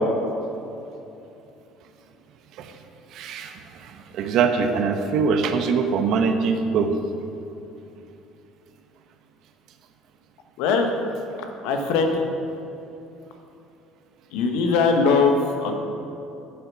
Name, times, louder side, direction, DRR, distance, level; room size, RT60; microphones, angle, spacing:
voice 1, 3.1-6.9, right 5 dB, 60° right, 7 dB, 0.9 m, -23 dB
voice 2, 10.6-10.9 11.6-12.2 14.3-15.8, left 4 dB, 70° left, 4 dB, 1.1 m, -20 dB
10.5 x 7.0 x 6.1 m, 2.8 s
hypercardioid pair, 65°, 0 cm